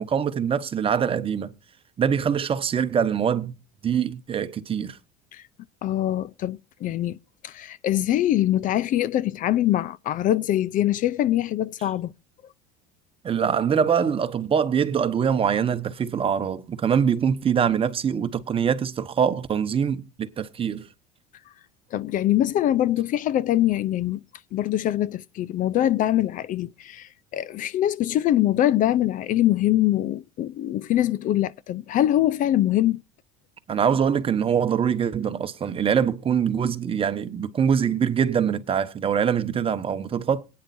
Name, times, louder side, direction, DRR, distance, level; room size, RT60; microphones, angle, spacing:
voice 1, 0.0-1.5 2.0-3.6 3.8-5.0 13.2-20.9 33.7-40.4, right 7 dB, 30° right, 1.1 m, -24 dB
voice 2, 5.8-7.2 7.4-12.1 21.9-24.2 24.5-33.0, left 13 dB, 45° left, 0.5 m, -23 dB
21.5 x 9.6 x 2.6 m
supercardioid pair, 110°, 19 cm